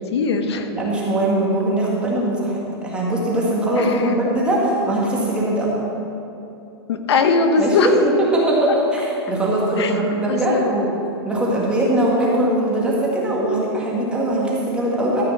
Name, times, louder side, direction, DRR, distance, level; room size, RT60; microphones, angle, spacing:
voice 1, 0.1-0.7 3.8-4.1 6.9-7.9 9.8-10.0 10.3-10.7, left 4 dB, 75° left, 6 dB, 1.0 m, -20 dB
voice 2, 0.7-5.7 7.6-7.9 8.3-10.9 11.3-15.2, right 1 dB, 5° right, -5 dB, 1.8 m, -21 dB
13.5 x 5.1 x 7.2 m, 2.8 s
hypercardioid pair, 160°, 14 cm